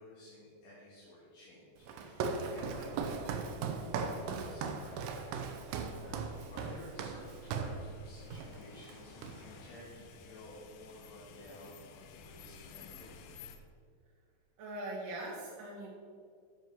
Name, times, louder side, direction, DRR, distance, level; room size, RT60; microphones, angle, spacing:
voice 1, 0.0-5.3 6.5-13.1, left 1 dB, 65° left, -8 dB, 3.3 m, -53 dB
Walk footsteps, 1.9-7.8 8.3-8.6 8.8-9.7, right 5 dB, 80° right, 1.8 m, -38 dB
sound 1, 3.9-13.6, left 4 dB, 80° left, 2.4 m, -54 dB
voice 2, 14.6-15.9, right 1 dB, 65° right, -5 dB, 2.6 m, -42 dB
9.4 x 5.4 x 6.0 m, 2.2 s
omnidirectional pair, 4.4 m